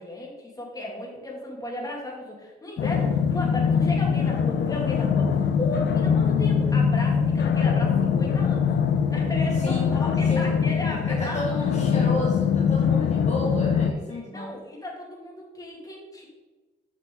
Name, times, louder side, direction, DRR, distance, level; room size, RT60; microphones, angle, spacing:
voice 1, 0.0-8.7 9.1-11.4 14.1-16.3, left 1 dB, 15° left, -2 dB, 2.4 m, -35 dB
sound 1, 2.8-13.9, left 6 dB, 60° left, 0.8 m, -23 dB
voice 2, 9.6-9.9 10.3-10.6 11.1-14.5, left 2 dB, 35° left, -5 dB, 1.8 m, -32 dB
8.1 x 5.8 x 3.9 m, 1.2 s
cardioid pair, 90°, 20 cm